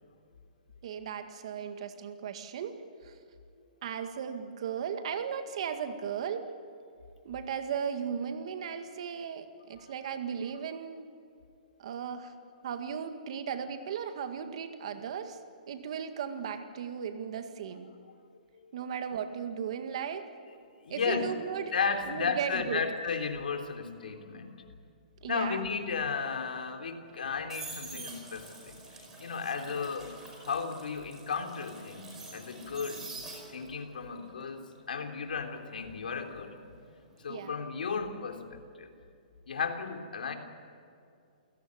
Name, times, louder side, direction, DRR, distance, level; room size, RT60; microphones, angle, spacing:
voice 1, 0.8-2.8 3.0-3.2 3.8-6.5 7.2-11.1 11.8-12.3 12.6-15.4 15.7-18.0 18.7-20.3 20.9-21.7 22.1-22.8 25.2-25.6 37.3-37.5, right 7 dB, 40° right, 7 dB, 1.9 m, -36 dB
voice 2, 20.8-21.3 21.7-24.6 25.3-28.8 29.2-30.2 30.4-33.1 33.5-34.6 34.9-36.9 37.2-38.9 39.5-40.3, left 5 dB, 85° left, 4 dB, 3.5 m, -34 dB
sound 1, 27.1-33.8 34.1-37.0 37.3-37.6, right 3 dB, 10° right, 4.9 m, -46 dB
28.5 x 17.5 x 9.7 m, 2.4 s
hypercardioid pair, 175°, 5 cm